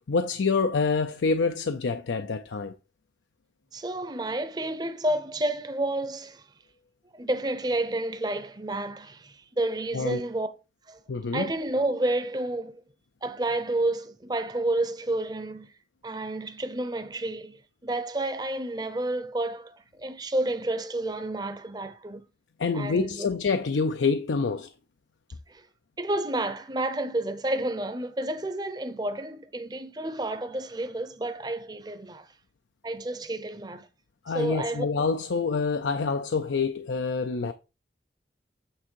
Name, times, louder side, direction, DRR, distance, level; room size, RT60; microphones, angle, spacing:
voice 1, 0.1-2.7 9.9-10.2 11.1-11.5 22.6-24.7 34.3-37.5, left 4 dB, 85° left, 0.5 m, -26 dB
voice 2, 3.7-6.4 7.1-10.5 10.9-11.0 11.3-12.8 13.2-15.7 16.0-22.3 22.7-23.3 25.5-25.7 26.0-32.3 32.8-33.9 34.3-34.9, right 1 dB, 20° right, 0.7 m, -30 dB
8.7 x 3.6 x 4.5 m
head